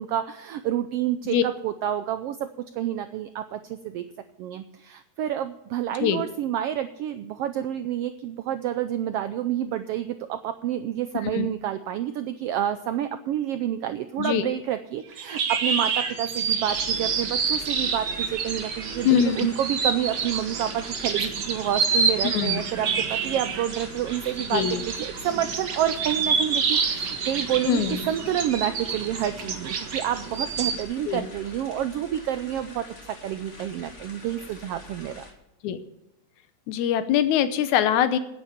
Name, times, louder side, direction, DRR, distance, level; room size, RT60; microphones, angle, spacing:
voice 1, 0.0-2.5 2.7-4.0 4.4-35.2, right 11 dB, 80° right, 10 dB, 1.4 m, -29 dB
voice 2, 14.2-14.5 19.0-19.4 22.2-22.6 24.5-24.8 27.7-28.0 31.1-31.2 35.6-35.8 36.7-38.2, left 9 dB, 90° left, 12 dB, 2.3 m, -23 dB
sound 1, 15.1-30.8, right 5 dB, 50° right, 1.5 m, -28 dB
sound 2, 16.7-35.3, left 2 dB, 25° left, 1.9 m, -45 dB
9.8 x 9.7 x 7.1 m, 0.92 s
omnidirectional pair, 3.3 m